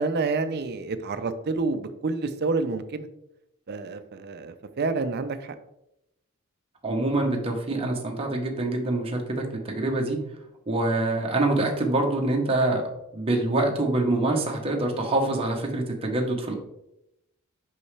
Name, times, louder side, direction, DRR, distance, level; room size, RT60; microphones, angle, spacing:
voice 1, 0.0-3.1 3.7-5.6, right 3 dB, 45° right, 10 dB, 0.5 m, -28 dB
voice 2, 6.8-10.2 10.7-12.8 13.1-16.5, right 2 dB, 25° right, 1 dB, 1.0 m, -25 dB
5.6 x 5.4 x 3.2 m, 0.85 s
head